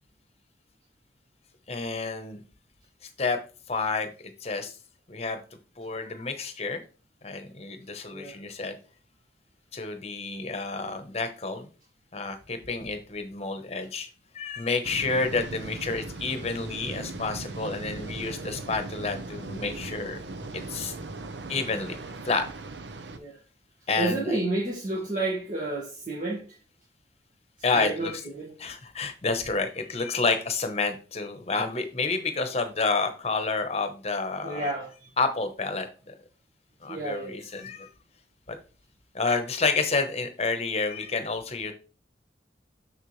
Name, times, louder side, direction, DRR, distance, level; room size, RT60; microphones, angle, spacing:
voice 1, 1.7-2.4 3.2-3.4 3.7-4.1 4.4-4.7 5.1-5.4 5.8-6.8 7.2-8.8 9.7-11.7 12.1-14.1 14.3-20.2 20.5-20.9 21.5-22.0 22.3-22.4 23.9-24.4 27.6-28.1 28.6-34.7 35.2-36.1 36.8-37.9 38.5-38.6 39.1-41.7, left 4 dB, 35° left, 1.0 m, -29 dB
sound 1, 14.8-23.2, right 2 dB, 75° right, 0.8 m, -39 dB
voice 2, 24.0-26.4 27.7-28.5 34.4-35.1 36.9-37.5, right 2 dB, 45° right, 1.6 m, -31 dB
6.6 x 6.4 x 3.2 m
head